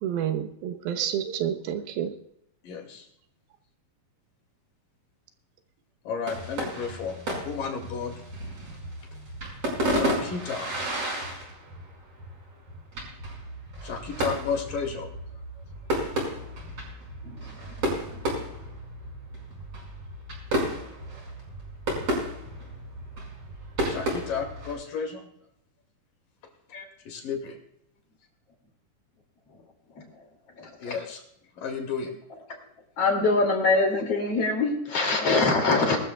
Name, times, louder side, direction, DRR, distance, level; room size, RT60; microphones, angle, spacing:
voice 1, 0.0-2.1, right 9 dB, 85° right, 8 dB, 3.0 m, -29 dB
voice 2, 2.6-3.1 6.1-7.2 7.4-8.2 9.8-10.7 13.8-15.1 23.9-25.2 27.1-27.6 30.8-31.2 31.6-32.2, left 5 dB, 65° left, 3 dB, 3.8 m, -32 dB
sound 1, 6.3-24.7, right 1 dB, 40° right, 6.2 m, -33 dB
voice 3, 17.2-18.4 26.7-26.8 29.5-29.6 29.9-30.2 30.5-30.9 32.5-32.6 33.0-36.0, left 3 dB, 45° left, 2 dB, 3.4 m, -25 dB
21.5 x 13.5 x 2.3 m, 0.74 s
omnidirectional pair, 4.2 m